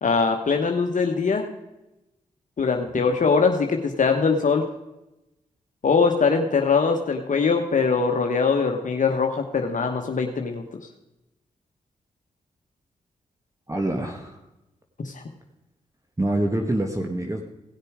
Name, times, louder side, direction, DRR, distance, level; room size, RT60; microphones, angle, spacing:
voice 1, 0.0-1.5 2.6-4.7 5.8-10.6 15.0-15.2, left 5 dB, 55° left, 3 dB, 1.1 m, -22 dB
voice 2, 13.7-14.4 16.2-17.4, right 1 dB, 20° right, 3 dB, 1.4 m, -25 dB
17.5 x 6.7 x 4.8 m, 0.96 s
supercardioid pair, 40°, 15 cm